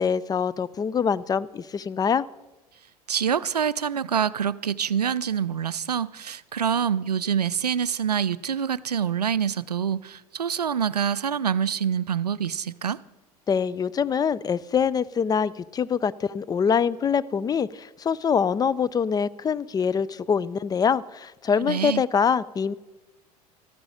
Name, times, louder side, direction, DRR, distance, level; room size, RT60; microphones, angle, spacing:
voice 1, 0.0-2.3 13.5-22.7, left 6 dB, 20° left, 0.4 m, -24 dB
voice 2, 3.1-13.0 21.6-22.0, right 8 dB, 85° right, 0.4 m, -26 dB
14.0 x 13.0 x 5.0 m
figure-of-eight pair, 75°, 20 cm